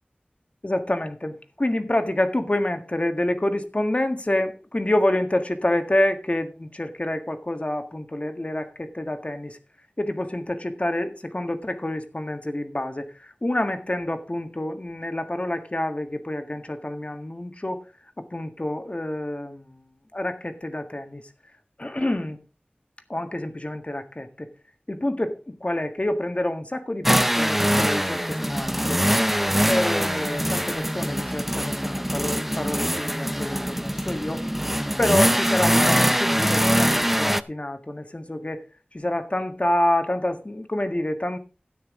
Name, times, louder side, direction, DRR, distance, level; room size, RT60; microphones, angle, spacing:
voice 1, 0.6-9.6 10.0-17.8 18.2-19.7 20.1-21.2 21.8-22.4 23.1-24.5 24.9-29.1 29.6-34.5 35.0-38.6 38.9-41.4, left 1 dB, 40° left, 1.7 m, -27 dB
sound 1, 27.1-37.4, equal, 5° right, 0.6 m, -23 dB
13.0 x 9.4 x 3.7 m
wide cardioid pair, 45°, 3 cm